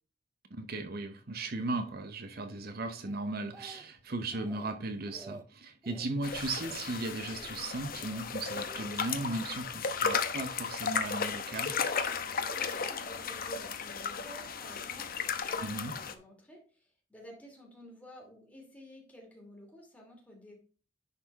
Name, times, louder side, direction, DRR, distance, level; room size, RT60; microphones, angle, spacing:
voice 1, 0.5-11.8 15.6-16.0, right 2 dB, 55° right, 0.8 m, -37 dB
Speech, 3.0-4.0 4.3-4.7 5.1-5.4 5.8-6.1 6.5-6.8 7.2-7.5 7.9-8.3 8.7-9.5 10.2-10.5, right 2 dB, 15° right, 0.5 m, -52 dB
sound 1, 6.2-16.1, left 6 dB, 50° left, 0.9 m, -35 dB
voice 2, 12.2-20.5, equal, 10° left, 2.5 m, -52 dB
10.5 x 4.4 x 4.1 m
head